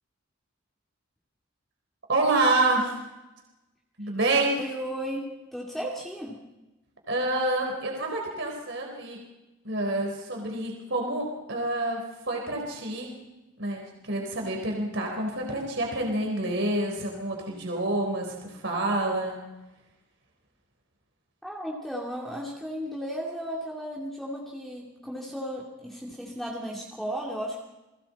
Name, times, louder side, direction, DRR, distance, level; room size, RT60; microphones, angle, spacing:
voice 1, 2.1-2.9 4.0-4.6 7.1-9.2 9.6-13.1 13.6-19.4, right 2 dB, 60° right, 1 dB, 4.0 m, -28 dB
voice 2, 4.6-6.5 21.4-27.6, equal, ahead, -3 dB, 2.6 m, -35 dB
30.0 x 21.5 x 4.3 m, 1.1 s
head